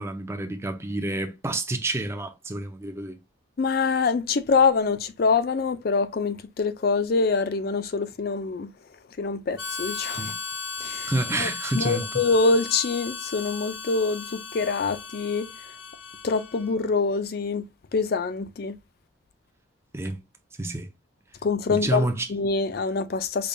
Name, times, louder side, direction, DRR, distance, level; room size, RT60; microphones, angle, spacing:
voice 1, 0.0-3.2 10.2-10.4 11.1-12.1 19.9-20.2 20.6-20.9 21.7-22.3, right 2 dB, 15° right, 0.5 m, -29 dB
voice 2, 3.6-8.7 9.2-10.3 10.8-11.1 11.4-11.5 11.7-15.5 16.2-17.6 17.9-18.8 21.4-23.5, left 4 dB, 50° left, 0.4 m, -25 dB
Harmonica, 9.6-16.9, left 4 dB, 70° left, 0.7 m, -36 dB
5.1 x 2.2 x 2.6 m
head